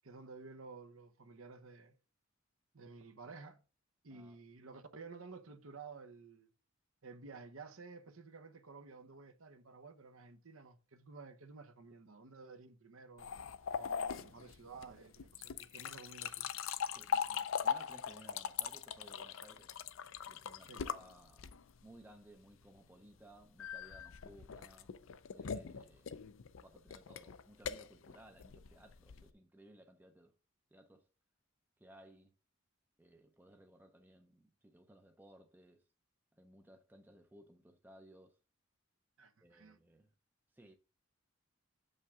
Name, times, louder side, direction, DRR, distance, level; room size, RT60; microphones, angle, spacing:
voice 1, 0.0-2.0 2.7-3.6 4.0-6.5 7.0-13.3 13.7-16.5 20.6-20.8 39.2-39.8, right 4 dB, 75° right, 0.9 m, -53 dB
sound 1, 13.2-21.8 23.6-29.3, left 7 dB, 70° left, 0.5 m, -40 dB
voice 2, 16.9-19.7 20.3-24.9 25.3-26.2 26.6-30.3 30.7-31.1 31.8-32.3 33.0-35.8 36.4-38.4 39.4-40.1 40.5-40.7, right 1 dB, 10° right, 0.5 m, -60 dB
7.0 x 5.5 x 3.6 m
head